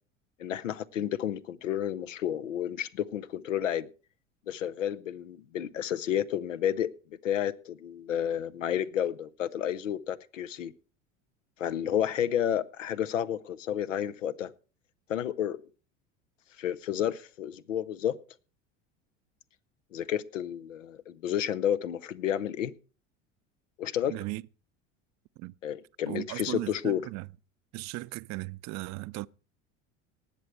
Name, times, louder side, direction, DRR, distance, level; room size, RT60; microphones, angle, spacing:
voice 1, 0.4-3.9 4.5-6.9 7.2-10.7 11.6-14.5 15.1-15.6 16.6-18.2 19.9-22.7 23.8-24.1 25.6-27.1, left 10 dB, 90° left, 0.7 m, -31 dB
voice 2, 24.1-24.4 25.4-25.5 26.1-27.3 27.7-29.3, right 21 dB, 50° right, 0.5 m, -37 dB
19.0 x 6.9 x 4.5 m
hypercardioid pair, 80°, 37 cm